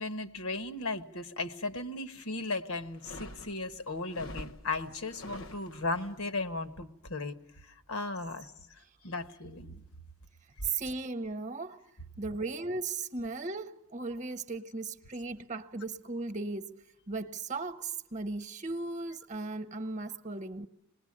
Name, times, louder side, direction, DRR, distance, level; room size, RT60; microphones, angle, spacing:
voice 1, 0.0-7.3 7.9-8.5 9.0-9.8, left 2 dB, 85° left, 1.3 m, -36 dB
sound 1, 2.9-6.1, left 1 dB, 70° left, 1.0 m, -46 dB
voice 2, 10.6-11.8 12.2-20.7, right 3 dB, 35° right, 0.9 m, -37 dB
26.5 x 20.0 x 8.7 m
head